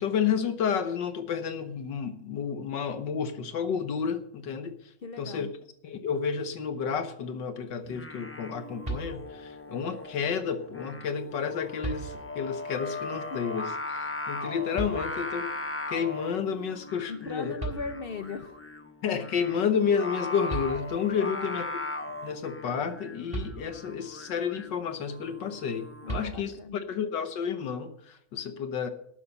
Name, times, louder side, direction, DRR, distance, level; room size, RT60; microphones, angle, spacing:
voice 1, 0.0-4.9 5.2-5.5 5.8-15.5 15.9-17.5 19.0-21.6 22.2-28.9, left 7 dB, 75° left, 9 dB, 1.7 m, -31 dB
voice 2, 5.0-5.5 13.3-13.4 17.1-18.6 21.1-21.6 26.0-26.9, left 4 dB, 50° left, 10 dB, 0.7 m, -39 dB
Singing, 7.8-26.3, left 2 dB, 15° left, 0.5 m, -39 dB
sound 1, 8.8-9.6 11.1-11.2 11.8-12.6 14.7-15.5 17.3-17.4 17.6-18.4 20.1-20.2 20.5-21.2 23.3-24.1 26.1-26.8, right 3 dB, 20° right, 3.9 m, -37 dB
13.0 x 8.3 x 6.7 m, 0.70 s
omnidirectional pair, 1.9 m